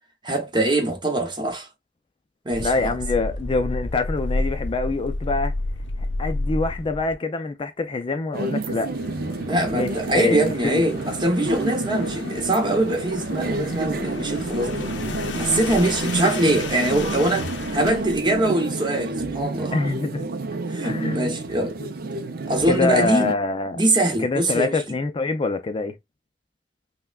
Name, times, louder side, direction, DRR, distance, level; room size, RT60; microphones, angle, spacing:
voice 1, 0.2-1.7 2.4-3.0 9.4-14.9 15.3-19.7 20.7-21.8 22.5-23.3 23.7-24.8, right 1 dB, 25° right, 0.8 m, -23 dB
sound 1, 2.5-7.1 8.6-18.5, left 2 dB, 80° left, 0.6 m, -32 dB
voice 2, 2.6-5.5 6.2-8.9 9.7-10.8 19.7-20.3 20.8-21.2 21.8-21.9 22.7-23.8 24.2-25.9, left 3 dB, 30° left, 0.4 m, -25 dB
sound 2, 8.3-23.4, right 3 dB, 55° right, 0.5 m, -29 dB
5.6 x 2.2 x 2.3 m
head